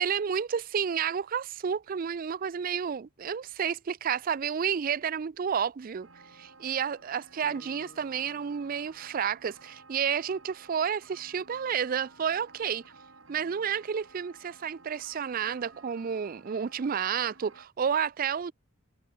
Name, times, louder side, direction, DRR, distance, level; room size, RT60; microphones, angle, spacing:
voice 1, 0.0-6.1 6.3-12.8 13.3-18.5, right 7 dB, 45° right, 0.4 m, -30 dB
sound 1, 6.0-17.7, right 3 dB, 70° right, 4.2 m, -55 dB
Acoustic guitar, 7.4-10.2, left 1 dB, 50° left, 6.4 m, -57 dB
head